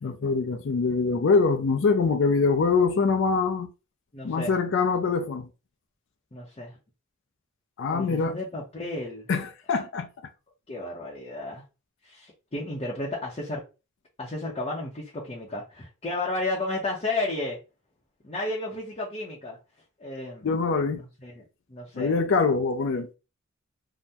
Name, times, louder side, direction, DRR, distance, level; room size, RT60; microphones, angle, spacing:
voice 1, 0.0-3.7 4.2-5.5 7.8-8.4 9.3-10.1 20.4-21.0 21.9-23.1, left 4 dB, 65° left, 0.4 m, -24 dB
voice 2, 4.1-4.6 6.3-6.7 7.9-9.3 10.7-11.6 12.0-13.6 14.2-17.6 18.2-19.6 20.0-20.5 20.9-21.4 21.7-22.2, left 2 dB, 30° left, 0.7 m, -33 dB
2.7 x 2.1 x 3.4 m
head